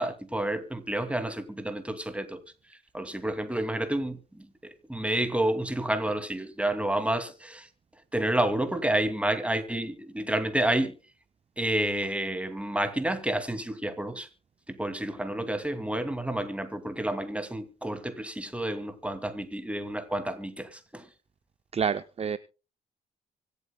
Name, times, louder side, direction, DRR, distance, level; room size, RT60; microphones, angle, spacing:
voice 1, 0.0-2.4 2.9-4.5 4.9-7.7 8.1-10.9 11.6-14.3 14.7-21.0, right 1 dB, 5° right, 2.5 m, -29 dB
voice 2, 21.7-22.4, right 7 dB, 30° right, 0.6 m, -28 dB
24.5 x 8.3 x 2.3 m
hypercardioid pair, 45°, 19 cm